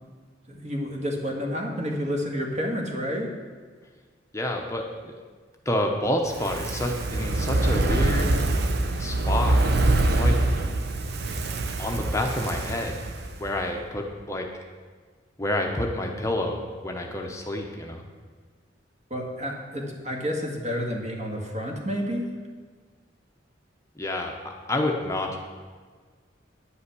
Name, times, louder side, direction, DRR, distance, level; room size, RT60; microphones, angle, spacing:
voice 1, 0.5-3.3 19.1-22.4, equal, 40° right, 0 dB, 1.9 m, -30 dB
voice 2, 4.3-5.1 5.7-8.3 9.0-10.4 11.8-13.0 13.4-14.5 15.4-18.0 24.0-25.4, left 1 dB, 15° left, 2 dB, 0.8 m, -29 dB
Fire, 6.3-13.6 13.9-14.0, right 2 dB, 60° right, 0.8 m, -24 dB
10.0 x 5.6 x 8.3 m, 1.5 s
head